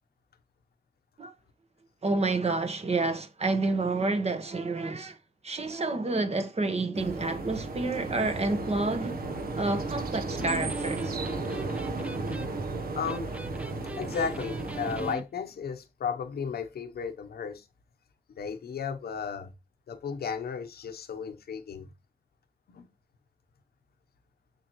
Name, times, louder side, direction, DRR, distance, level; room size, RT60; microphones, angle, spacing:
voice 1, 2.0-5.2 5.4-9.2 9.6-11.2, right 3 dB, 45° right, 1.3 m, -29 dB
sound 1, 6.9-15.1, right 3 dB, 70° right, 1.2 m, -34 dB
Electric guitar, 10.4-15.3, right 1 dB, 10° right, 0.5 m, -41 dB
voice 2, 12.9-13.3 14.0-17.7 18.4-19.5 19.9-21.9 22.7-22.9, left 6 dB, 90° left, 1.0 m, -34 dB
7.0 x 6.8 x 3.1 m
wide cardioid pair, 90°, 16 cm